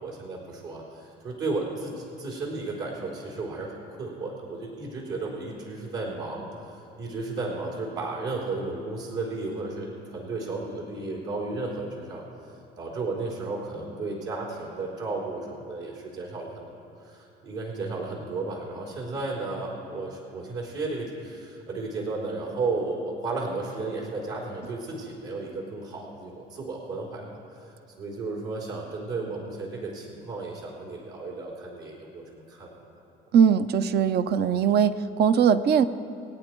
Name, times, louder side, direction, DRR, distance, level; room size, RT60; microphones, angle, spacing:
voice 1, 0.0-12.2 12.8-16.7 17.0-27.3 27.6-32.7, right 3 dB, 70° right, -3 dB, 4.0 m, -34 dB
voice 2, 33.3-35.8, right 7 dB, 55° right, 12 dB, 0.7 m, -20 dB
24.0 x 9.0 x 4.6 m, 3.0 s
supercardioid pair, 80°, 20 cm